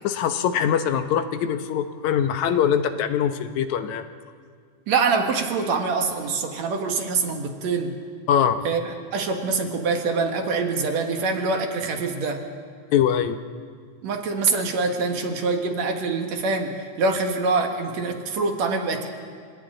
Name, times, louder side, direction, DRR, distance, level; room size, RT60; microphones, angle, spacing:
voice 1, 0.0-4.0 8.3-8.6 12.9-13.4, left 8 dB, 75° left, 9 dB, 2.2 m, -22 dB
voice 2, 4.9-8.0 8.6-12.5 14.0-19.1, right 4 dB, 65° right, 4 dB, 2.8 m, -25 dB
29.5 x 27.0 x 3.9 m, 2.1 s
omnidirectional pair, 3.4 m